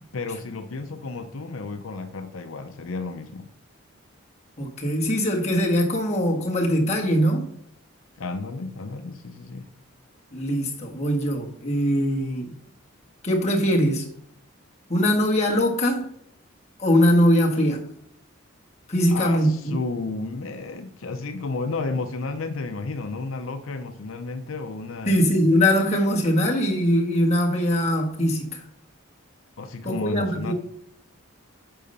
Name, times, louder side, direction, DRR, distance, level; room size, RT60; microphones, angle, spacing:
voice 1, 0.1-3.5 8.2-9.6 19.1-25.1 29.6-30.5, left 3 dB, 75° left, 0.6 m, -32 dB
voice 2, 4.6-7.5 10.3-12.5 13.2-14.0 14.9-16.1 16.8-17.8 18.9-19.8 25.1-28.6 29.8-30.5, equal, 30° left, 1.5 m, -22 dB
8.9 x 5.6 x 5.4 m
head